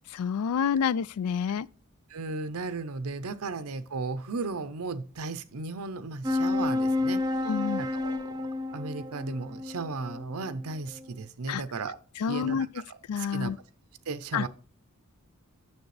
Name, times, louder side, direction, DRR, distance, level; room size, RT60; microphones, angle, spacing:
voice 1, 0.1-1.7 7.5-7.8 11.5-11.6 12.2-12.7 13.1-13.6 14.3-14.5, left 7 dB, 85° left, 0.3 m, -28 dB
voice 2, 2.1-7.2 7.8-8.3 8.7-12.0 12.3-13.5 14.1-14.5, right 3 dB, 80° right, 0.7 m, -35 dB
sound 1, 6.2-11.1, left 2 dB, 20° right, 0.6 m, -30 dB
9.4 x 7.0 x 3.3 m
head